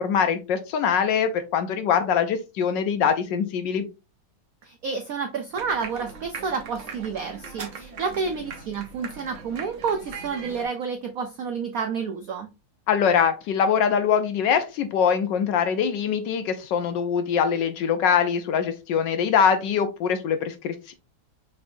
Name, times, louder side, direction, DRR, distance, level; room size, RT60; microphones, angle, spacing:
voice 1, 0.0-3.9 12.9-20.9, left 7 dB, 70° left, 9 dB, 1.1 m, -23 dB
voice 2, 4.6-12.5, right 5 dB, 85° right, 5 dB, 0.7 m, -30 dB
sound 1, 5.5-10.7, right 5 dB, 55° right, 0.9 m, -40 dB
6.1 x 3.4 x 2.6 m, 0.27 s
omnidirectional pair, 2.3 m